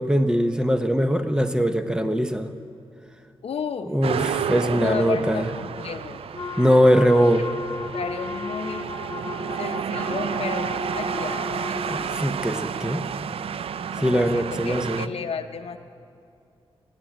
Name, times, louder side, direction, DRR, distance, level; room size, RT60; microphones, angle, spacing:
voice 1, 0.0-2.5 3.8-5.4 6.6-7.5 11.9-13.0 14.0-15.1, equal, 10° right, 8 dB, 0.7 m, -21 dB
voice 2, 3.4-3.9 4.8-6.2 7.9-8.9 9.6-12.2 14.0-15.8, left 6 dB, 75° left, 6 dB, 0.7 m, -33 dB
sound 1, 4.0-15.1, right 7 dB, 70° right, 0.4 m, -31 dB
Wind instrument woodwind instrument, 6.3-12.1, left 3 dB, 45° left, 0.8 m, -34 dB
15.5 x 8.9 x 9.4 m, 2.4 s
wide cardioid pair, 120°, 10 cm